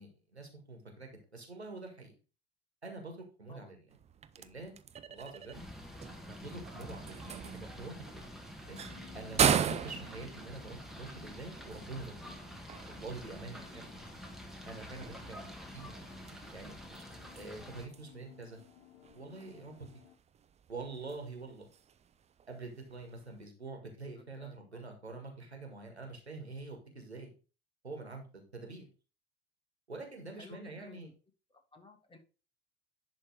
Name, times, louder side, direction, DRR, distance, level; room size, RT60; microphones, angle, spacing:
voice 1, 0.0-2.1 2.8-3.8 4.4-4.8 5.1-5.6 6.3-8.4 8.7-8.8 9.1-12.4 12.9-13.9 14.6-15.9 16.5-16.8 17.3-18.6 19.1-19.9 20.7-21.7 22.5-27.3 27.8-28.9 29.9-31.1, right 3 dB, 90° right, 3 dB, 1.8 m, -46 dB
sound 1, 3.9-23.4, right 8 dB, 20° right, 0.6 m, -39 dB
sound 2, 5.5-17.9, equal, ahead, 1.8 m, -48 dB
sound 3, 8.7-20.1, left 11 dB, 60° left, 1.4 m, -59 dB
voice 2, 13.5-14.2 24.2-24.8 30.3-31.1 31.5-32.2, left 3 dB, 15° left, 5 dB, 1.9 m, -57 dB
10.5 x 3.6 x 4.7 m, 0.33 s
figure-of-eight pair, 70°, 32 cm